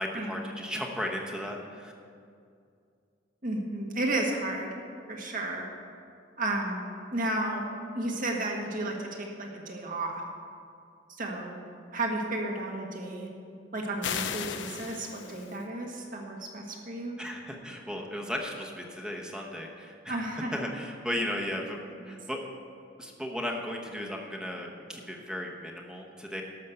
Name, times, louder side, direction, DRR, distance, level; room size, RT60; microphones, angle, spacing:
voice 1, 0.0-1.9 17.2-20.3 20.5-22.4 23.0-26.4, left 1 dB, 5° right, 0 dB, 1.1 m, -35 dB
voice 2, 3.4-4.7 5.1-5.7 6.4-6.8 7.1-7.6 7.9-10.2 11.1-11.6 11.9-13.3 13.7-17.2 20.1-20.5 22.0-22.1, right 2 dB, 45° right, 0 dB, 1.7 m, -32 dB
sound 1, 14.0-15.6, left 8 dB, 70° left, 0.6 m, -35 dB
12.5 x 6.3 x 6.7 m, 2.4 s
head